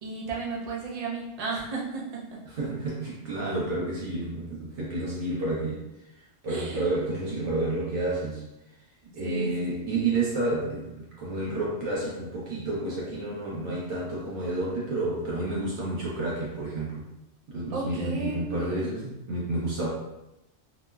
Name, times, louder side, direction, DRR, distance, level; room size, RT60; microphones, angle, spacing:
voice 1, 0.0-2.2 6.5-6.9 9.0-9.7 17.7-18.9, right 4 dB, 45° right, -4 dB, 0.5 m, -34 dB
voice 2, 2.4-5.8 6.4-8.4 9.1-17.0 17.5-19.9, right 2 dB, 70° right, -6 dB, 1.0 m, -30 dB
2.9 x 2.0 x 2.3 m, 0.91 s
omnidirectional pair, 1.2 m